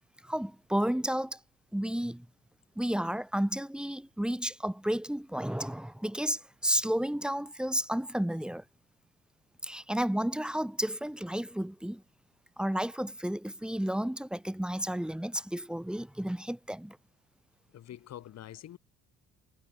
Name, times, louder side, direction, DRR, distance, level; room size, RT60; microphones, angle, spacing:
voice 1, 0.2-1.4 1.7-2.3 2.7-8.6 9.6-12.0 12.6-17.0, equal, 5° right, 1.7 m, -32 dB
voice 2, 17.7-18.8, left 12 dB, 55° left, 5.5 m, -45 dB
cardioid pair, 135°, 30 cm